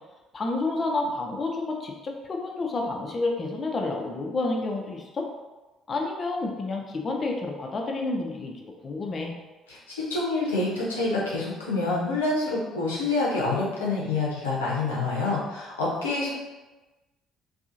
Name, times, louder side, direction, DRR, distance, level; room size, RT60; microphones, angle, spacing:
voice 1, 0.3-5.2 5.9-8.5 8.8-9.3, left 2 dB, 35° left, 1 dB, 0.4 m, -29 dB
voice 2, 9.7-16.3, left 3 dB, 80° left, -5 dB, 0.6 m, -27 dB
2.7 x 2.4 x 2.5 m, 1.2 s
figure-of-eight pair, 50°, 0 cm